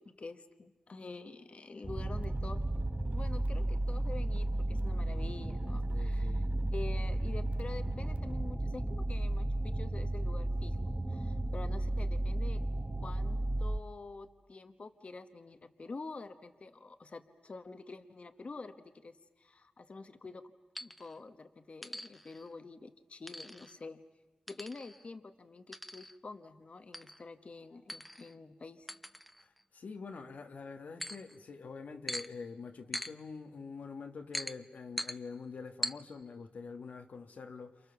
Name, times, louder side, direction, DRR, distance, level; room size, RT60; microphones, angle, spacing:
voice 1, 0.0-2.6 3.1-6.4 6.7-10.8 11.1-12.6 13.0-20.4 20.8-24.0 24.5-28.9, left 3 dB, 55° left, 1.2 m, -47 dB
sound 1, 1.8-13.8, right 1 dB, 15° right, 1.3 m, -33 dB
sound 2, 1.9-8.4, right 5 dB, 75° right, 0.9 m, -52 dB
voice 2, 5.9-6.4 29.4-29.5 29.7-37.8, left 4 dB, 85° left, 1.5 m, -45 dB
sound 3, 20.7-21.1 21.8-22.5 23.3-23.8 24.5-25.1 25.7-26.2 26.9-27.2 27.9-28.3 28.9-29.6 31.0-31.4 32.1-32.3 32.9-33.1 34.3-34.6 35.0-35.2 35.8-35.9, equal, ahead, 0.9 m, -41 dB
28.5 x 28.5 x 7.0 m
cardioid pair, 65°, 3 cm